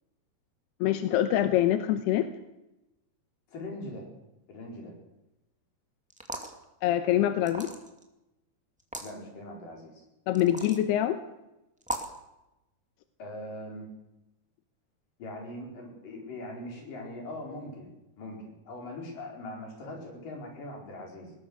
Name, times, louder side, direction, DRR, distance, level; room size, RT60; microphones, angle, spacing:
voice 1, 0.8-2.3 6.8-7.7 10.3-11.2, left 12 dB, 85° left, 9 dB, 3.0 m, -25 dB
voice 2, 3.5-4.1 4.5-5.0 9.0-10.0 13.2-13.9 15.2-17.9 18.2-21.3, left 1 dB, 55° left, 0 dB, 6.4 m, -41 dB
sound 1, 6.1-6.6 7.4-8.0 8.8-9.1 10.3-10.8 11.8-12.2, right 1 dB, 5° right, 1.2 m, -37 dB
21.5 x 19.0 x 6.6 m, 0.93 s
omnidirectional pair, 4.6 m